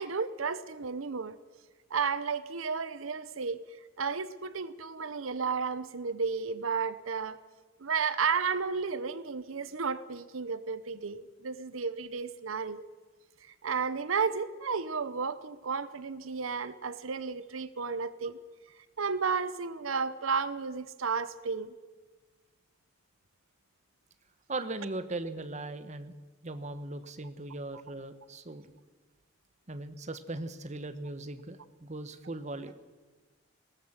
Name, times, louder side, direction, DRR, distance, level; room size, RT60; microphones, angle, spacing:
voice 1, 0.0-1.4 1.9-3.6 4.0-7.4 7.8-12.9 13.4-18.4 19.0-21.7, right 5 dB, 85° right, 14 dB, 0.8 m, -33 dB
voice 2, 24.5-26.1 26.4-28.7 29.7-32.7, right 2 dB, 35° right, 10 dB, 1.0 m, -39 dB
20.0 x 17.5 x 7.4 m, 1.3 s
head